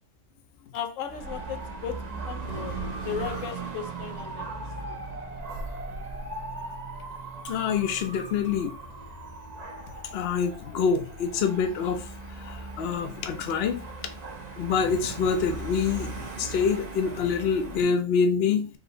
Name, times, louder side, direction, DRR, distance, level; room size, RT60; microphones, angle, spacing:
voice 1, 0.7-5.0, left 8 dB, 85° left, 1.0 m, -36 dB
Dog / Motorcycle, 1.1-17.8, right 3 dB, 40° right, 0.7 m, -38 dB
sound 1, 3.1-14.4, right 2 dB, 65° right, 1.3 m, -49 dB
voice 2, 5.2-5.5 7.4-8.7 10.1-14.1 14.6-18.7, left 6 dB, 60° left, 0.8 m, -26 dB
4.1 x 2.8 x 3.8 m
omnidirectional pair, 1.3 m